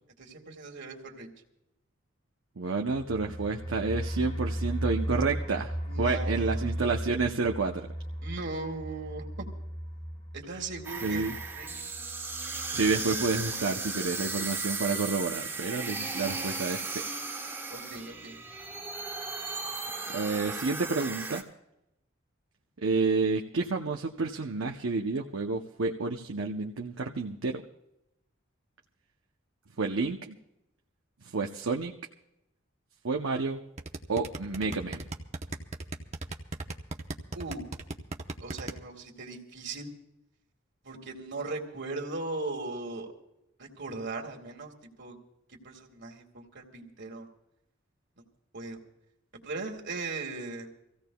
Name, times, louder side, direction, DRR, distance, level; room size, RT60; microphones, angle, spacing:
voice 1, 0.2-1.3 5.9-6.7 8.2-9.2 10.3-11.3 11.5-12.2 17.7-18.4 37.3-37.6 38.4-39.9 40.8-43.1 43.6-44.7 45.0-45.2 45.6-47.3 48.5-48.8 49.4-50.7, right 3 dB, 60° right, 1 dB, 2.1 m, -38 dB
voice 2, 2.6-7.9 11.0-11.3 12.7-17.0 20.1-21.4 22.8-27.6 29.8-30.4 31.2-31.9 33.0-33.6 34.1-35.0, right 4 dB, 90° right, 1 dB, 0.8 m, -30 dB
sound 1, 2.8-13.5 13.8-13.9 14.3-14.4, equal, 30° left, 1.4 m, -36 dB
sound 2, 10.8-21.4, right 4 dB, 15° right, 1.4 m, -36 dB
sound 3, 33.8-38.7, right 2 dB, 35° right, 0.9 m, -36 dB
26.0 x 16.0 x 2.3 m, 0.85 s
head